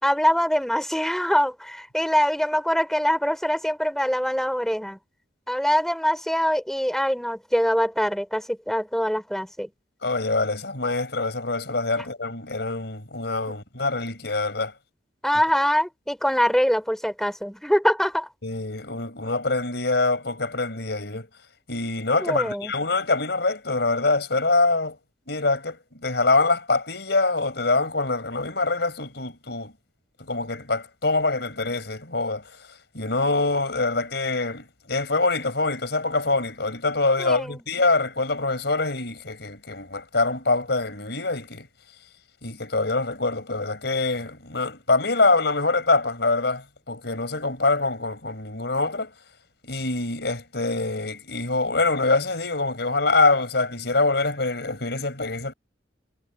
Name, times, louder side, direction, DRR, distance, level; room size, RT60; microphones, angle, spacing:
voice 1, 0.0-5.0 5.5-9.7 12.0-12.1 15.2-18.3 22.2-22.7 37.2-37.6, equal, ahead, 4.6 m, -23 dB
voice 2, 10.0-14.7 18.4-21.3 21.7-25.0 25.3-25.8 26.0-29.7 30.2-32.4 32.9-41.7 42.4-49.1 49.6-55.5, left 3 dB, 65° left, 5.7 m, -24 dB
head